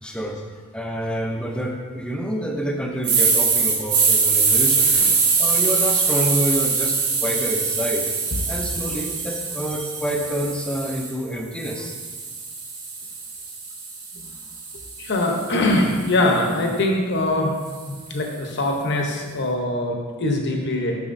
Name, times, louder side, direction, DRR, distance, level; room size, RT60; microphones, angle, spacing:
voice 1, 0.0-5.1 5.4-12.0, equal, 5° left, 2 dB, 0.5 m, -28 dB
sound 1, 3.0-11.1 11.6-15.8, right 4 dB, 85° right, 1.7 m, -23 dB
voice 2, 4.8-5.2 8.3-8.4 10.1-10.2 14.1-14.2 15.0-17.5 17.9-21.0, left 1 dB, 50° left, 1 dB, 0.8 m, -23 dB
7.0 x 6.2 x 2.6 m, 1.5 s
head